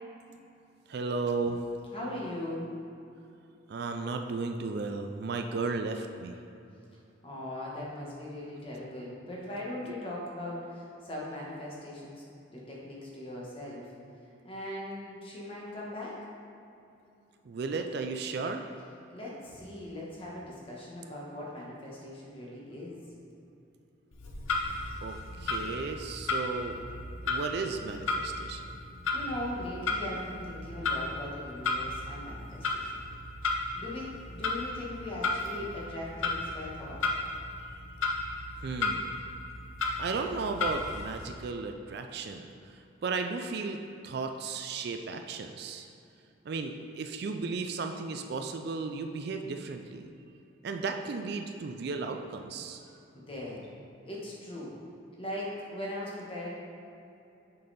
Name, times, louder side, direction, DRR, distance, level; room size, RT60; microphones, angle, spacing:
voice 1, 0.9-1.6 3.7-6.4 9.3-9.4 17.4-18.7 25.0-26.8 27.3-28.7 38.6-39.1 40.0-45.9 46.4-50.1 50.6-52.8, right 4 dB, 55° right, 5 dB, 0.3 m, -35 dB
voice 2, 1.9-2.7 7.2-12.2 12.5-13.9 14.4-16.2 19.1-23.0 29.1-32.9 33.7-37.0 53.1-53.7 54.0-54.7 55.2-56.5, left 1 dB, 25° left, -4 dB, 1.3 m, -39 dB
Clock, 24.1-41.3, left 3 dB, 90° left, 0.7 m, -34 dB
6.6 x 5.4 x 4.1 m, 2.7 s
head